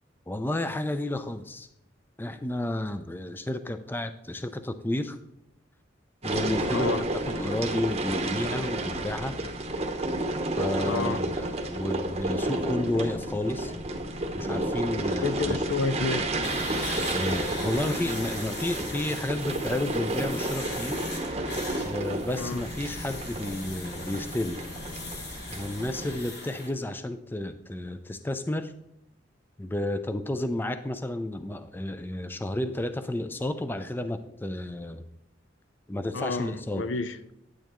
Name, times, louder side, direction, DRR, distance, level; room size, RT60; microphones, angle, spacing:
voice 1, 0.3-1.7 2.2-5.2 6.2-9.4 10.6-13.7 14.3-15.6 17.1-21.0 21.8-24.6 25.5-28.7 29.6-35.0 35.9-36.8, left 1 dB, 10° left, 10 dB, 0.4 m, -31 dB
sound 1, 6.2-26.2, right 1 dB, 35° right, 0.8 m, -31 dB
voice 2, 6.7-7.0 10.9-11.2 15.2-16.3 22.4-22.6 36.1-37.2, left 4 dB, 85° left, 12 dB, 0.6 m, -29 dB
sound 2, 16.4-26.7, left 2 dB, 60° left, 1.7 m, -40 dB
9.2 x 8.8 x 3.0 m, 0.77 s
head